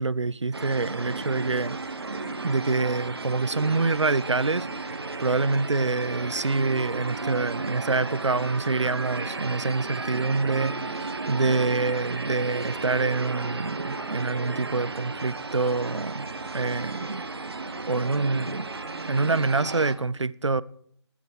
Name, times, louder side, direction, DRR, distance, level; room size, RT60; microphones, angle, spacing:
voice 1, 0.0-1.8 2.4-16.3 16.5-17.3 17.9-18.7 19.1-20.6, right 3 dB, 80° right, 0.6 m, -26 dB
sound 1, 0.5-20.0, right 3 dB, 60° right, 1.5 m, -34 dB
12.5 x 10.0 x 6.1 m
figure-of-eight pair, 155°, 15 cm